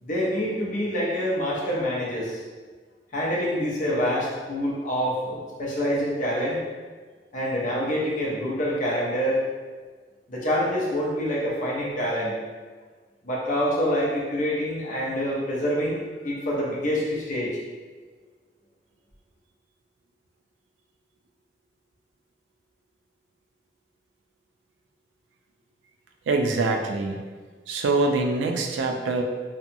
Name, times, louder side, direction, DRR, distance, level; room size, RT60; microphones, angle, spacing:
voice 1, 0.0-2.4 3.1-6.6 7.3-9.4 10.3-12.4 13.2-17.6, equal, 45° left, -5 dB, 0.6 m, -26 dB
voice 2, 26.3-27.2 27.7-29.2, right 3 dB, 90° right, 3 dB, 0.3 m, -24 dB
2.8 x 2.2 x 2.6 m, 1.5 s
head